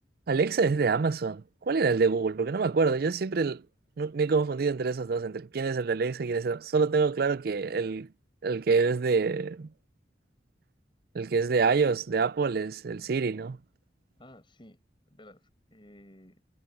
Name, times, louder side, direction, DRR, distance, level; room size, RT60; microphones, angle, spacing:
voice 1, 0.3-3.6 4.0-8.1 8.4-9.7 11.1-13.6, right 4 dB, 60° right, 0.5 m, -26 dB
voice 2, 14.2-14.8 15.1-16.4, left 1 dB, 30° left, 7.4 m, -54 dB
head